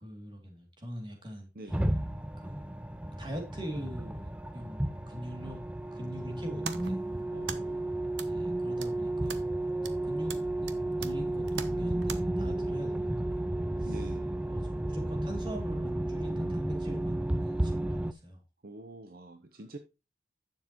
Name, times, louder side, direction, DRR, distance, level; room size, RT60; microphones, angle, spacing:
voice 1, 0.0-1.7 2.4-2.8 3.2-5.6 5.9-7.0 8.2-9.5 10.0-13.5 13.8-14.0 14.5-18.4, equal, 25° right, 2 dB, 2.6 m, -43 dB
sound 1, 1.7-18.1, right 1 dB, 5° right, 0.4 m, -33 dB
sound 2, 6.3-12.2, right 6 dB, 80° right, 1.0 m, -44 dB
voice 2, 7.3-8.0 13.9-14.4 18.6-19.8, right 1 dB, 50° right, 7 dB, 0.8 m, -46 dB
11.0 x 7.3 x 3.0 m, 0.28 s
head